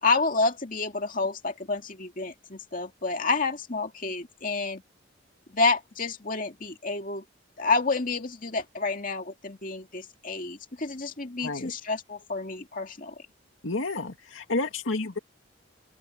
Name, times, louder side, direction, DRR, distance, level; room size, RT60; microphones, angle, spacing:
voice 1, 0.0-4.8 5.5-7.2 7.6-13.2, left 3 dB, 45° left, 2.2 m, -29 dB
voice 2, 11.4-11.7 13.6-15.2, left 2 dB, 85° left, 2.2 m, -30 dB
open air
head